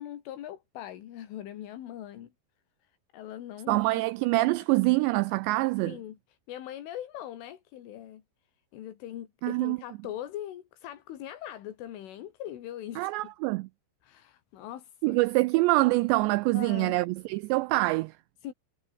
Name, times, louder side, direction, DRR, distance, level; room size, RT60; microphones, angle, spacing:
voice 1, 0.0-2.3 2.8-4.6 5.9-8.2 8.7-13.3 14.0-15.2 16.5-17.0 18.4-18.5, left 12 dB, 80° left, 4.7 m, -41 dB
voice 2, 3.7-6.0 9.4-9.8 13.0-13.7 15.0-18.1, right 21 dB, 90° right, 2.5 m, -25 dB
omnidirectional pair, 5.6 m